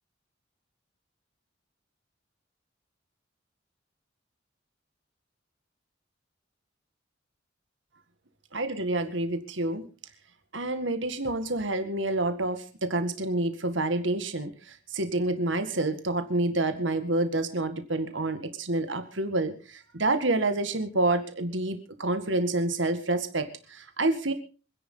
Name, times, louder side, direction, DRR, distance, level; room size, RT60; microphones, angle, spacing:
voice 1, 8.5-9.8 10.5-24.3, right 2 dB, 75° right, 9 dB, 1.9 m, -28 dB
26.5 x 10.5 x 3.9 m, 0.35 s
head